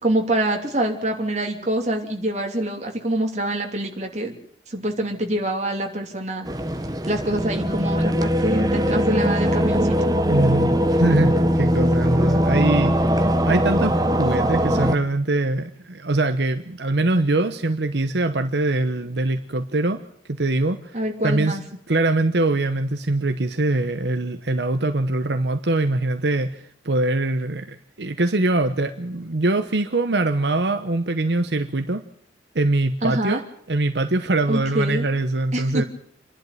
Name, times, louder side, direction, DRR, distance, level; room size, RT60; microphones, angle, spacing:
voice 1, 0.0-4.4 4.7-6.5 7.0-10.1 20.9-21.6 33.0-33.4 34.5-35.1 35.5-35.8, right 1 dB, 40° right, 2 dB, 3.0 m, -25 dB
sound 1, 6.4-15.0, equal, 20° right, 1.1 m, -21 dB
voice 2, 10.3-20.0 20.3-21.6 21.9-32.0 32.5-33.4 33.7-35.8, right 2 dB, 75° right, 8 dB, 1.1 m, -23 dB
27.5 x 11.5 x 9.2 m, 0.68 s
head